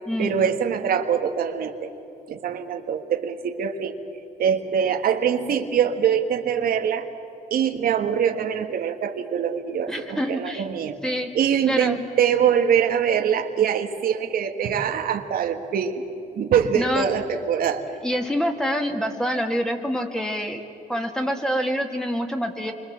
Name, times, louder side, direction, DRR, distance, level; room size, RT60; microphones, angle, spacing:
voice 1, 0.2-1.9 2.3-3.9 4.4-7.1 7.5-11.0 11.3-16.0 16.3-17.9, right 8 dB, 75° right, 5 dB, 1.6 m, -23 dB
voice 2, 9.9-10.6 11.0-11.3 11.7-12.0 16.7-17.0 18.0-20.6 20.9-22.7, equal, 5° left, 4 dB, 2.4 m, -26 dB
28.5 x 24.5 x 7.5 m, 3.0 s
cardioid pair, 120°, 15 cm